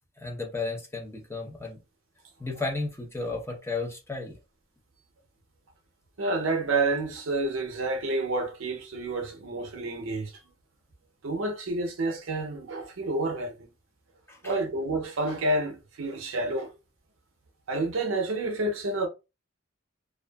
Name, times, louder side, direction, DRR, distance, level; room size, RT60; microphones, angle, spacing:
voice 1, 0.2-1.8 2.4-4.4 14.3-14.5, left 3 dB, 15° left, 0.7 m, -33 dB
voice 2, 6.2-10.3 11.2-13.5 14.4-16.7 17.7-19.1, right 2 dB, 70° right, 0.6 m, -29 dB
2.5 x 2.3 x 2.2 m
head